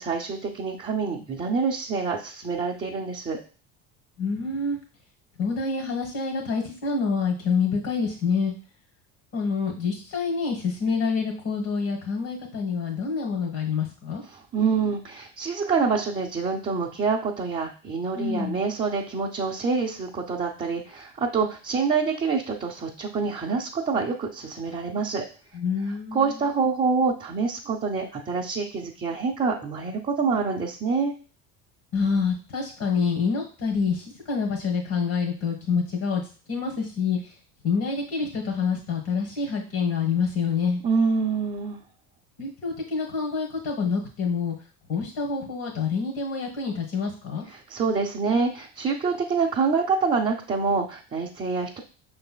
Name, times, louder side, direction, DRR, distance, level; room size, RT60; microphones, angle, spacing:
voice 1, 0.0-3.4 14.3-25.2 26.1-31.1 40.8-41.8 47.5-51.8, right 5 dB, 20° right, -3 dB, 0.7 m, -26 dB
voice 2, 4.2-4.8 5.4-8.5 9.3-14.2 18.1-18.6 25.5-26.3 31.9-36.2 36.5-37.2 37.6-40.8 42.4-44.5 44.9-47.4, left 5 dB, 55° left, 1 dB, 1.4 m, -27 dB
5.4 x 3.3 x 2.2 m, 0.37 s
hypercardioid pair, 80°, 41 cm